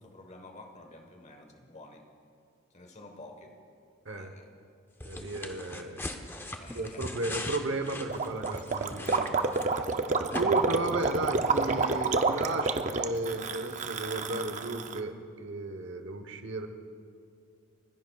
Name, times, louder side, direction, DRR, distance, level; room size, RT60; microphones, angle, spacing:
voice 1, 0.0-2.0 2.7-3.6 4.1-4.5 6.4-7.1, left 2 dB, 35° left, 5 dB, 1.2 m, -50 dB
sound 1, 5.0-9.9 10.3-10.4, left 2 dB, 10° left, 0.6 m, -40 dB
voice 2, 5.0-6.0 6.7-9.3 9.7-16.7, right 2 dB, 60° right, 7 dB, 0.9 m, -34 dB
Gurgling, 8.1-15.0, right 4 dB, 35° right, 0.5 m, -29 dB
30.0 x 10.5 x 2.3 m, 2.4 s
head